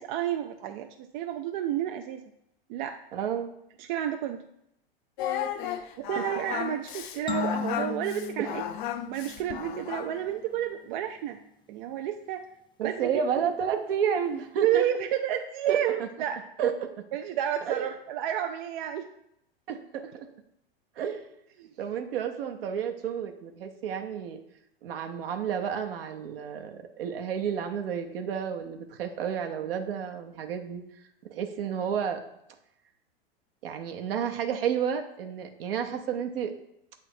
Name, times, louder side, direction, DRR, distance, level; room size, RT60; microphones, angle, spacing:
voice 1, 0.0-2.2 2.7-3.0 3.8-4.4 6.0-8.6 9.0-11.4 11.7-12.4 12.8-13.2 14.6-16.4 17.1-19.1 21.6-21.7, right 11 dB, 50° right, 5 dB, 0.5 m, -30 dB
voice 2, 3.1-3.5 5.6-5.9 8.4-8.5 12.8-14.8 15.7-16.1 16.6-17.0 17.6-17.9 19.7-20.3 21.0-21.2 21.8-24.4 24.8-30.8 31.3-32.2 33.6-36.5, right 8 dB, 65° right, 5 dB, 1.0 m, -31 dB
Singing, 5.2-10.2, left 10 dB, 55° left, 0.6 m, -34 dB
sound 1, 7.3-9.9, left 5 dB, 15° left, 0.7 m, -36 dB
8.0 x 3.6 x 4.4 m, 0.79 s
hypercardioid pair, 105°, 30 cm